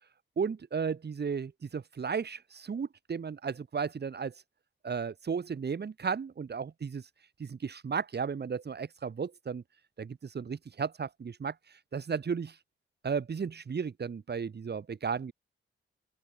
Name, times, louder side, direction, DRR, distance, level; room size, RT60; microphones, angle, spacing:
voice 1, 0.4-4.3 4.8-7.0 7.4-9.6 10.0-11.5 11.9-12.6 13.0-15.3, right 6 dB, 55° right, 2.9 m, -34 dB
open air
wide cardioid pair, 100°, 21 cm